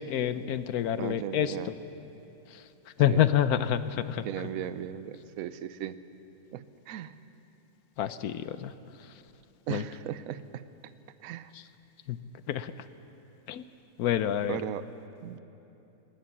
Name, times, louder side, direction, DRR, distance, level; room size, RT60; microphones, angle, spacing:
voice 1, 0.0-1.5 2.5-2.6 3.0-4.3 8.0-8.7 9.0-9.1 9.7-9.8 12.1-12.2 12.5-12.7 13.5-13.6 14.0-14.6, left 10 dB, 65° left, 13 dB, 0.9 m, -27 dB
voice 2, 1.0-1.7 3.1-3.2 4.2-6.0 6.5-7.3 9.7-10.9 11.2-11.5 14.5-14.9 15.2-15.4, right 10 dB, 65° right, 13 dB, 0.9 m, -37 dB
20.0 x 18.5 x 7.2 m, 2.9 s
omnidirectional pair, 2.1 m